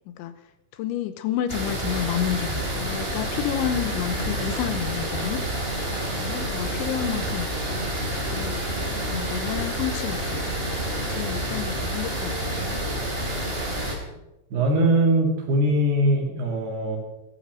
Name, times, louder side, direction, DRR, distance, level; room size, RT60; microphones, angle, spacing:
voice 1, 0.7-5.4 6.1-7.8 8.2-10.5 11.0-12.8, left 11 dB, 80° left, 11 dB, 3.2 m, -30 dB
sound 1, 1.5-13.9, right 1 dB, 15° right, 3.0 m, -28 dB
voice 2, 14.5-17.0, right 1 dB, 60° right, 2 dB, 4.4 m, -21 dB
15.0 x 13.5 x 6.2 m, 0.96 s
omnidirectional pair, 5.5 m